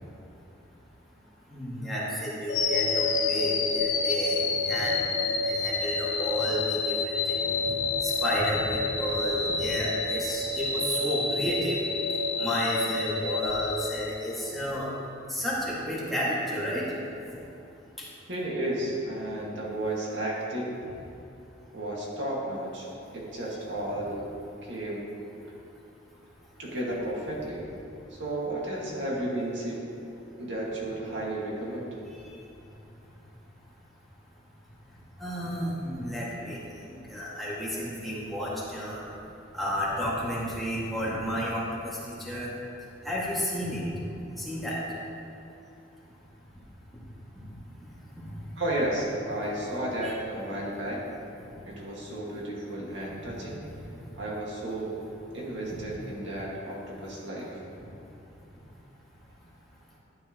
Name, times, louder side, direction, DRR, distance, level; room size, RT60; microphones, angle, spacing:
voice 1, 1.5-4.4 4.6-5.1 5.4-7.3 7.7-11.8 12.4-14.9 15.3-16.8 35.2-39.0 39.5-42.5 43.0-43.9 44.4-44.8 48.2-48.4 50.0-50.1 55.7-55.8, equal, ahead, -9 dB, 2.1 m, -32 dB
sound 1, 2.5-14.6, left 3 dB, 80° left, 1.0 m, -28 dB
voice 2, 18.3-20.8 21.7-22.9 23.1-24.3 24.6-25.0 26.6-27.6 28.1-29.8 30.4-32.0 48.6-51.1 51.7-53.6 54.2-54.9 55.3-57.6, right 1 dB, 75° right, -4 dB, 2.0 m, -33 dB
12.0 x 8.9 x 3.1 m, 2.7 s
head